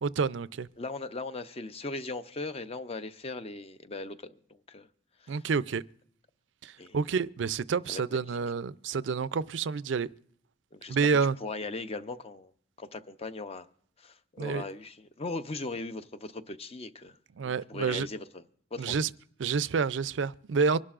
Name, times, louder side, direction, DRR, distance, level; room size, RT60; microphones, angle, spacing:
voice 1, 0.0-0.7 5.3-5.8 6.6-10.1 10.9-11.4 14.4-14.6 17.4-18.1 18.8-19.1 19.4-20.8, right 5 dB, 80° right, 0.5 m, -28 dB
voice 2, 0.8-4.9 5.2-5.4 6.8-7.0 7.9-8.2 10.7-12.5 12.8-13.7 14.0-17.2 17.4-18.4 18.7-19.1, left 3 dB, 35° left, 0.6 m, -39 dB
25.5 x 11.5 x 2.5 m
head